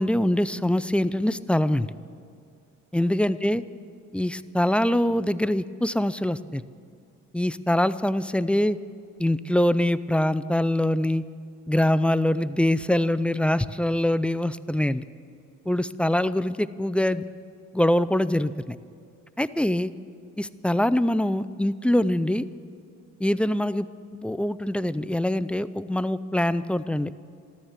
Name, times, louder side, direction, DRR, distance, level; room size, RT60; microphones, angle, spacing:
voice 1, 0.0-1.9 2.9-3.6 4.1-6.6 7.3-8.8 9.2-11.2 11.7-15.0 15.7-17.2 17.7-18.8 19.4-19.9 20.4-22.5 23.2-23.9 24.1-27.1, left 1 dB, 5° left, 15 dB, 0.4 m, -24 dB
14.0 x 13.0 x 7.3 m, 2.4 s
cardioid pair, 90°, 30 cm